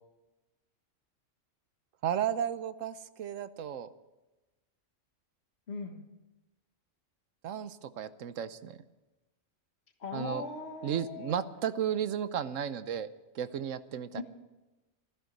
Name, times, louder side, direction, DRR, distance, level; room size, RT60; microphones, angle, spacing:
voice 1, 2.0-3.9 7.4-8.8 10.1-10.4 10.8-13.1 13.3-14.2, right 9 dB, 80° right, 13 dB, 1.1 m, -34 dB
voice 2, 5.7-6.0 10.0-11.4 14.2-14.3, left 4 dB, 55° left, 4 dB, 1.8 m, -39 dB
15.0 x 14.5 x 6.6 m, 1.1 s
omnidirectional pair, 1.3 m